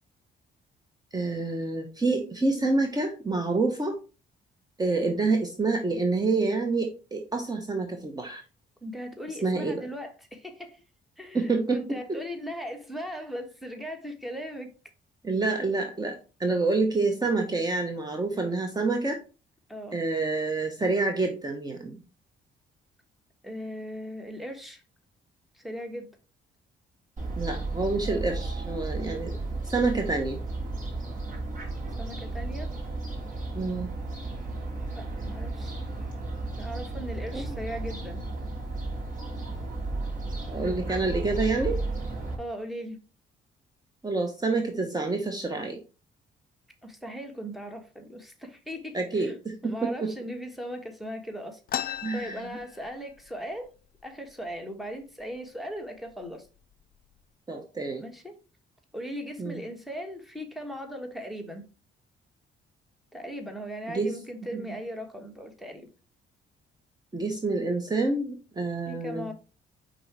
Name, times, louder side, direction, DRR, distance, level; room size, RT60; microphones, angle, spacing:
voice 1, 1.1-4.0 4.8-8.4 9.4-9.8 11.3-11.9 15.2-19.2 19.9-22.0 27.4-29.3 29.7-30.4 33.5-33.9 37.3-37.4 40.5-41.8 44.0-45.8 48.9-50.1 52.0-52.4 57.5-58.0 59.4-59.6 63.9-64.1 64.5-64.6 67.1-69.3, right 3 dB, 20° right, 1.0 m, -27 dB
voice 2, 8.8-10.8 11.2-14.7 19.7-20.0 23.4-24.8 25.5-26.1 32.0-32.7 35.0-35.7 36.6-38.2 42.4-43.0 46.8-49.4 49.6-53.7 54.0-56.5 58.0-58.4 58.9-61.7 63.1-65.9 68.9-69.3, equal, ahead, 1.4 m, -38 dB
Fowl, 27.2-42.4, right 2 dB, 40° right, 2.7 m, -34 dB
sound 1, 51.7-53.3 53.6-53.7 54.0-54.6 55.2-55.4 56.1-56.3 56.7-57.2, left 10 dB, 50° left, 0.4 m, -36 dB
5.3 x 3.9 x 4.6 m
cardioid pair, 90°, 20 cm